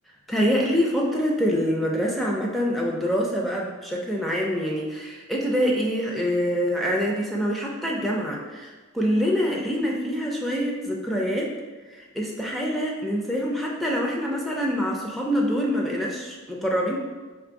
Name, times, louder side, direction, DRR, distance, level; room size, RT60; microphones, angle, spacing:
voice 1, 0.3-11.5 11.9-17.0, equal, ahead, -2 dB, 0.3 m, -25 dB
3.3 x 2.5 x 4.5 m, 1.3 s
head